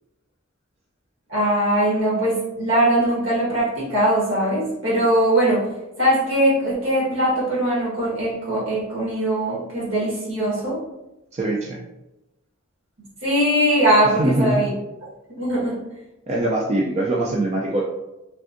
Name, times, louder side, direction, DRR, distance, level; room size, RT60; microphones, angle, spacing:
voice 1, 1.3-5.7 6.0-10.8 13.2-14.7 15.3-15.8, right 1 dB, 65° right, -6 dB, 1.4 m, -21 dB
voice 2, 11.3-11.8 14.2-14.6 16.3-17.8, right 1 dB, 30° right, -2 dB, 0.3 m, -22 dB
3.4 x 2.5 x 2.5 m, 0.96 s
head